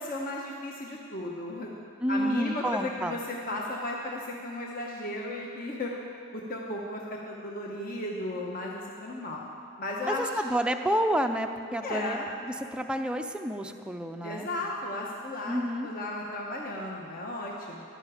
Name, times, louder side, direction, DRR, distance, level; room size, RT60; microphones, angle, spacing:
voice 1, 0.0-1.7 2.1-5.9 6.3-9.4 9.8-10.3 11.8-12.3 14.2-17.8, left 2 dB, 45° left, -2 dB, 1.0 m, -35 dB
voice 2, 2.0-3.2 10.1-14.5 15.5-15.9, equal, 5° right, 5 dB, 0.5 m, -30 dB
15.0 x 11.5 x 5.0 m, 2.6 s
head